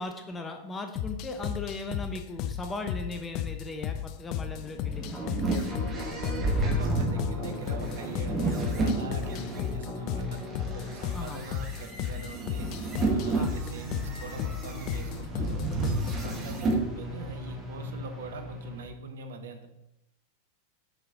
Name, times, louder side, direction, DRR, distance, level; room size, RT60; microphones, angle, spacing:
voice 1, 0.0-5.5 11.1-11.4 13.3-13.5 16.3-16.5, left 2 dB, 15° left, 5 dB, 0.7 m, -38 dB
sound 1, 1.0-16.3, left 10 dB, 40° left, 0.4 m, -35 dB
sound 2, 4.6-9.6 10.2-16.8, right 3 dB, 25° right, 1.3 m, -31 dB
sound 3, 5.1-18.9, right 1 dB, 5° right, 1.5 m, -39 dB
voice 2, 6.0-10.4 10.7-12.7 13.1-15.7 16.1-19.7, right 3 dB, 60° right, 7 dB, 0.9 m, -42 dB
6.3 x 4.9 x 3.8 m, 0.83 s
figure-of-eight pair, 90°, 0 cm